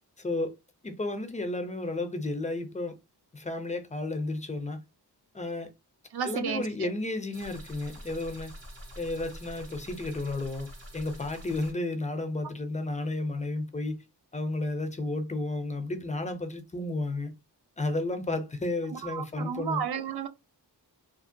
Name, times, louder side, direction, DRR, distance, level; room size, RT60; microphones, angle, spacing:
voice 1, 0.2-0.5 0.8-3.0 3.3-4.8 5.3-5.7 6.2-8.5 9.0-10.7 10.9-14.0 14.3-17.3 17.8-19.8, left 2 dB, 20° left, 0.4 m, -32 dB
voice 2, 6.1-6.9 18.9-20.3, right 7 dB, 65° right, 0.5 m, -33 dB
sound 1, 7.3-11.7, equal, 85° right, 1.2 m, -46 dB
2.8 x 2.1 x 2.5 m
wide cardioid pair, 110°, 41 cm